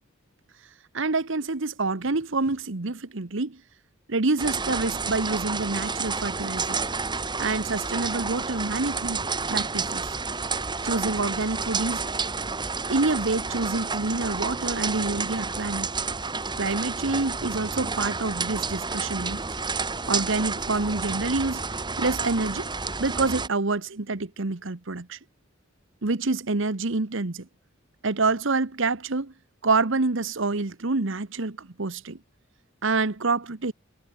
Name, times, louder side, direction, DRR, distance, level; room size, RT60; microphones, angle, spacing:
voice 1, 0.9-3.6 4.1-6.8 7.4-10.1 10.8-12.0 12.9-15.9 16.6-19.4 20.1-21.7 22.0-22.7 23.0-25.2 26.0-27.4 28.0-29.3 29.6-32.2 32.8-33.7, right 3 dB, 65° right, 1.2 m, -27 dB
sound 1, 4.4-23.5, right 4 dB, 20° right, 2.2 m, -30 dB
head